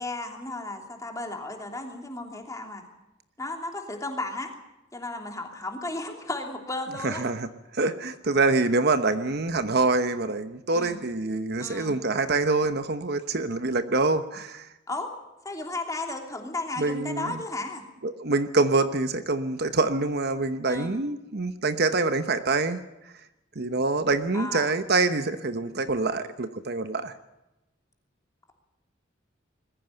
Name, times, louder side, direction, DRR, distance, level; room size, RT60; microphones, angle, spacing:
voice 1, 0.0-2.8 3.4-4.5 4.9-7.2 10.7-11.0 11.6-11.9 14.9-15.1 15.4-17.9 20.7-21.0 24.3-24.7, left 2 dB, 15° left, 3 dB, 3.1 m, -34 dB
voice 2, 7.0-7.5 7.7-14.7 16.8-17.4 18.0-22.8 23.6-27.1, right 3 dB, 55° right, 10 dB, 1.0 m, -25 dB
21.0 x 15.0 x 9.2 m, 0.95 s
head